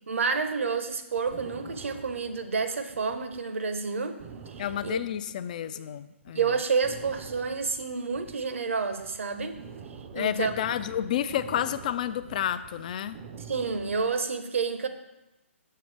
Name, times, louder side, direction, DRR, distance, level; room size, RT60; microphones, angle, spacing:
voice 1, 0.1-4.2 4.5-5.0 5.7-5.8 6.3-9.5 10.1-10.5 13.4-14.9, right 5 dB, 70° right, 9 dB, 0.7 m, -29 dB
sound 1, 0.9-3.4 3.7-3.8 4.2-5.9 6.2-6.4 6.8-14.1, right 6 dB, 30° right, 0.5 m, -46 dB
voice 2, 4.6-6.4 10.1-13.2, left 10 dB, 35° left, 13 dB, 0.3 m, -30 dB
6.9 x 6.6 x 3.2 m, 0.98 s
hypercardioid pair, 145°, 7 cm